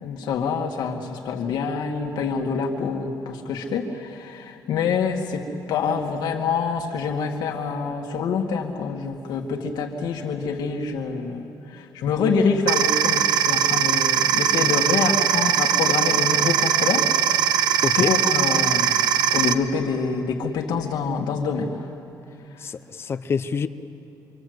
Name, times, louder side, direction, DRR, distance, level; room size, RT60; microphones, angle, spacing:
voice 1, 0.0-17.7 17.9-19.0 19.3-21.9, left 5 dB, 80° left, 2 dB, 2.0 m, -26 dB
sound 1, 12.7-19.5, right 9 dB, 90° right, 1.1 m, -21 dB
voice 2, 17.8-18.1 22.6-23.7, left 6 dB, 35° left, 12 dB, 0.7 m, -26 dB
26.5 x 25.5 x 8.0 m, 2.7 s
cardioid pair, 155°, 7 cm